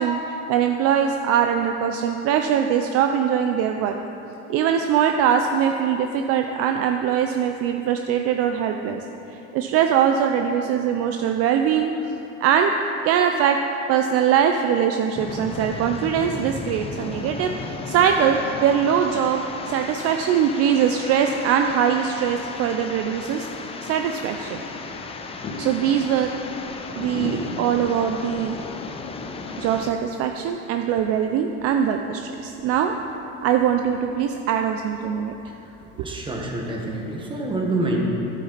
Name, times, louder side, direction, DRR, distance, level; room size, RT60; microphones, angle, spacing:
voice 1, 0.0-4.0 4.5-9.0 9.3-11.9 12.4-12.7 13.0-13.6 13.9-23.5 23.8-24.6 25.6-26.3 27.0-28.6 29.6-32.9 33.4-35.3 36.0-36.1, right 8 dB, 50° right, 5 dB, 0.5 m, -22 dB
sound 1, 15.1-29.9, left 4 dB, 20° left, 0.6 m, -35 dB
sound 2, 24.5-36.5, left 3 dB, 40° left, 2.1 m, -40 dB
voice 2, 35.9-38.0, right 2 dB, 15° right, -1 dB, 1.5 m, -27 dB
11.5 x 8.5 x 4.1 m, 3.0 s
supercardioid pair, 130°, 31 cm